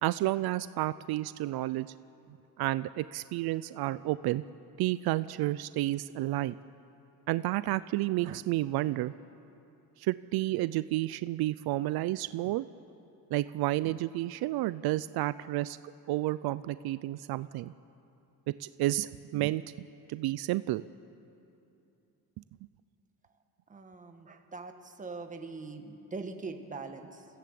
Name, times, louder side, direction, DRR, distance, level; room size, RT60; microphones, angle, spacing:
voice 1, 0.0-1.9 2.6-4.4 4.8-6.5 7.3-9.1 10.0-12.7 13.3-15.8 16.1-17.7 18.5-20.8, right 16 dB, 75° right, 15 dB, 0.5 m, -31 dB
voice 2, 23.7-27.3, right 3 dB, 20° right, 5 dB, 1.4 m, -42 dB
29.0 x 15.5 x 7.6 m, 2.8 s
cardioid pair, 165°, 38 cm